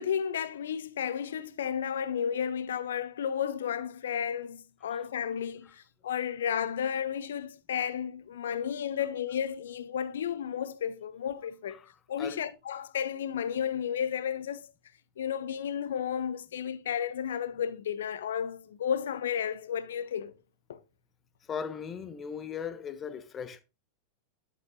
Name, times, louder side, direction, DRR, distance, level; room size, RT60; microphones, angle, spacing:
voice 1, 0.0-11.8 12.1-14.6 15.2-20.3 20.7-20.8, left 8 dB, 60° left, 0.7 m, -32 dB
voice 2, 21.5-23.6, left 7 dB, 25° left, 1.1 m, -38 dB
11.0 x 7.9 x 2.5 m
figure-of-eight pair, 90°, 0 cm